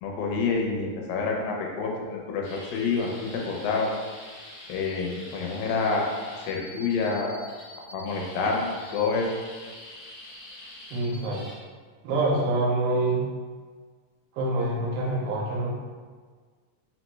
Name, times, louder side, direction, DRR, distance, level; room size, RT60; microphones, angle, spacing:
voice 1, 0.0-3.9 4.7-6.0 6.5-7.4 7.9-9.3, left 4 dB, 85° left, -1 dB, 2.4 m, -28 dB
sound 1, 2.4-11.6, left 1 dB, 70° left, 1.6 m, -45 dB
voice 2, 10.9-11.4 12.0-13.3 14.3-15.8, right 2 dB, 90° right, -4 dB, 2.5 m, -26 dB
5.5 x 2.1 x 3.0 m, 1.5 s
omnidirectional pair, 4.1 m